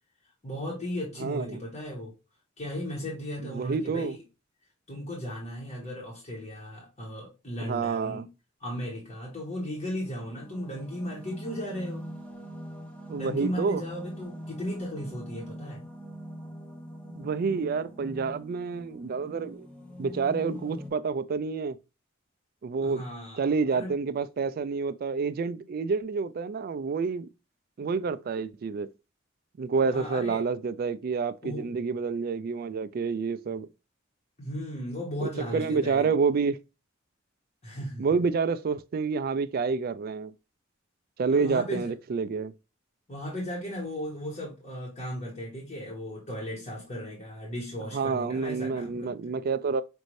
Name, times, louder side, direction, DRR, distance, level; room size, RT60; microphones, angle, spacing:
voice 1, 0.4-2.1 2.6-4.2 4.9-8.3 8.6-12.1 13.2-15.8 22.8-24.0 29.8-30.4 31.4-31.8 34.4-36.1 37.6-38.1 41.3-41.9 43.1-49.3, equal, 35° left, 1.2 m, -36 dB
voice 2, 1.2-1.6 3.4-4.1 7.6-8.2 13.1-13.8 17.1-19.7 20.0-21.8 22.6-23.0 23.4-27.3 27.8-28.9 29.6-33.7 35.2-36.6 38.0-40.3 41.2-42.5 47.9-49.8, right 5 dB, 50° right, 0.3 m, -28 dB
sound 1, 9.6-20.9, equal, 5° left, 0.6 m, -43 dB
5.2 x 2.6 x 3.1 m
head